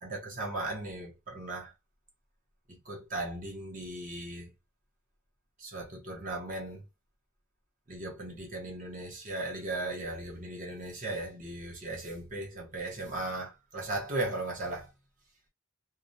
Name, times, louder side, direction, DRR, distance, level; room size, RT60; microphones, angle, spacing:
voice 1, 0.0-1.7 2.7-4.5 5.6-6.8 7.9-14.9, right 2 dB, 35° right, 0.8 m, -37 dB
2.4 x 2.1 x 2.6 m
head